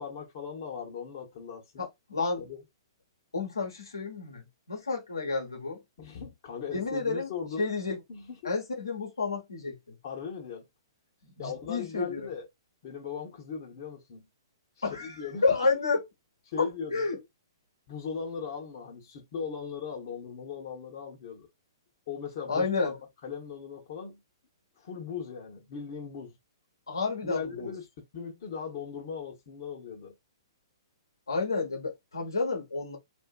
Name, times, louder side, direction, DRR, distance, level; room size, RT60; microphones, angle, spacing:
voice 1, 0.0-1.9 2.4-2.6 6.0-7.7 8.1-8.5 10.0-10.6 11.4-12.5 12.8-14.2 15.0-15.5 16.5-17.1 17.9-21.5 22.1-22.9 23.2-24.2 24.8-26.4 27.2-30.1, left 6 dB, 45° left, 1.0 m, -38 dB
voice 2, 1.8-2.4 3.3-5.8 6.7-7.3 7.6-8.0 8.4-10.0 11.2-12.3 14.8-15.1 15.4-16.0 16.6-17.2 22.5-22.9 26.9-27.7 31.3-33.0, left 4 dB, 80° left, 1.1 m, -30 dB
2.6 x 2.5 x 2.3 m
figure-of-eight pair, 115°, 2 cm